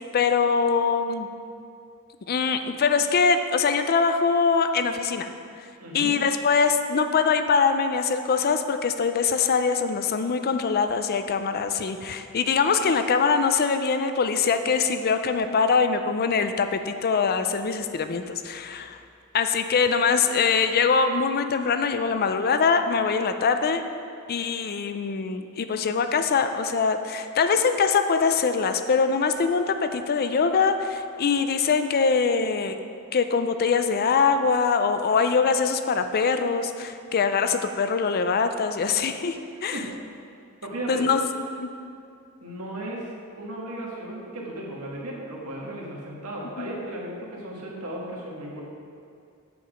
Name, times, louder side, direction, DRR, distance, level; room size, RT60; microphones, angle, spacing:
voice 1, 0.1-1.3 2.3-5.3 5.9-19.0 19.3-23.8 24.3-32.8 33.1-39.8 40.9-41.7 46.6-46.7, left 5 dB, 45° left, 9 dB, 0.4 m, -23 dB
voice 2, 5.8-6.2 39.7-39.8 40.6-41.0 42.4-43.1 43.4-48.6, right 1 dB, 85° right, -3 dB, 1.6 m, -35 dB
7.6 x 6.9 x 5.0 m, 2.4 s
head